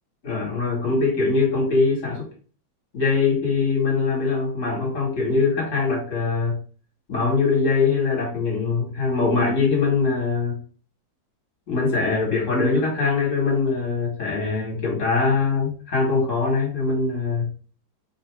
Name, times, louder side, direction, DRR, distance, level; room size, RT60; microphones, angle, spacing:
voice 1, 0.2-2.3 2.9-6.6 7.1-10.6 11.7-17.5, left 4 dB, 40° left, -1 dB, 2.0 m, -22 dB
3.9 x 2.9 x 4.5 m, 0.41 s
omnidirectional pair, 2.0 m